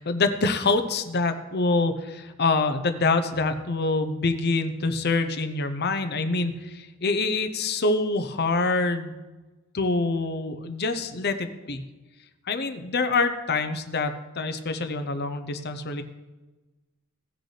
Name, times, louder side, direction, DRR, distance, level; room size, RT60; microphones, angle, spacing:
voice 1, 0.0-9.2 9.7-11.8 12.5-16.0, left 3 dB, 50° left, 9 dB, 0.8 m, -26 dB
17.0 x 6.5 x 3.3 m, 1.2 s
head